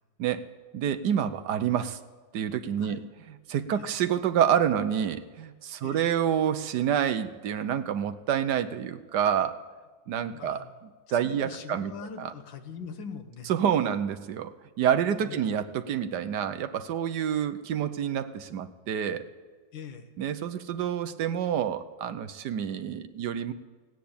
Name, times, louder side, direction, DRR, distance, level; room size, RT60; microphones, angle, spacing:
voice 1, 0.7-2.0 2.3-9.6 10.1-10.6 11.1-11.9 12.2-12.3 13.5-19.3 20.2-23.5, right 9 dB, 70° right, 10 dB, 1.3 m, -28 dB
voice 2, 10.3-10.7 11.1-13.5 15.2-15.5 19.7-20.1, left 6 dB, 85° left, 8 dB, 1.9 m, -42 dB
17.5 x 9.3 x 8.6 m, 1.4 s
omnidirectional pair, 2.0 m